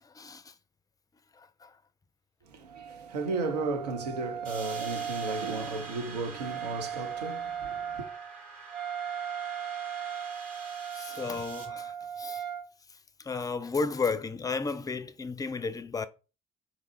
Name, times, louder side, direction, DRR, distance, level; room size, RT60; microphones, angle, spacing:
voice 1, 0.0-0.5 1.3-1.7 4.2-4.3 10.9-12.4 13.2-16.1, left 4 dB, 20° left, 0.4 m, -33 dB
voice 2, 2.5-8.1, right 3 dB, 80° right, 0.5 m, -34 dB
Wind instrument woodwind instrument, 2.7-12.7, right 8 dB, 25° right, 1.6 m, -38 dB
sound 1, 4.4-11.6, right 4 dB, 45° right, 2.3 m, -46 dB
3.5 x 2.7 x 4.1 m
figure-of-eight pair, 45°, 20 cm